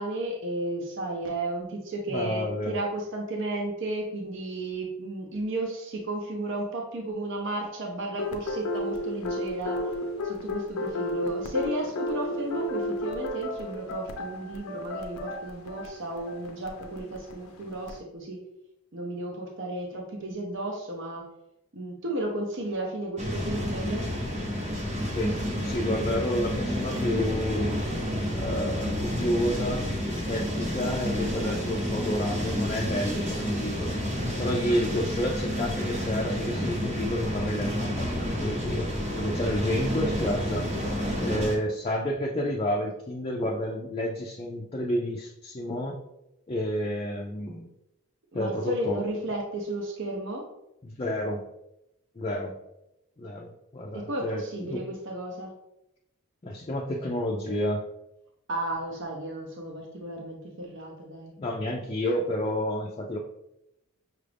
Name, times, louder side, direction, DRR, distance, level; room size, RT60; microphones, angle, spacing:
voice 1, 0.0-9.9 10.2-18.5 18.9-21.3 21.7-24.1 41.1-41.4 48.3-50.5 53.9-55.5 58.5-61.3, right 1 dB, 55° right, 0 dB, 0.6 m, -33 dB
voice 2, 2.1-2.8 25.1-27.8 28.3-34.0 34.4-40.7 41.2-46.0 46.5-47.7 48.3-49.0 50.8-51.4 52.2-52.6 53.2-54.8 56.4-57.8 61.4-63.2, equal, 25° left, -2 dB, 0.4 m, -30 dB
sound 1, 8.2-18.0, left 1 dB, 80° left, 0.6 m, -33 dB
sound 2, 23.2-41.5, equal, 30° right, 0.9 m, -30 dB
5.8 x 2.5 x 3.3 m, 0.86 s
head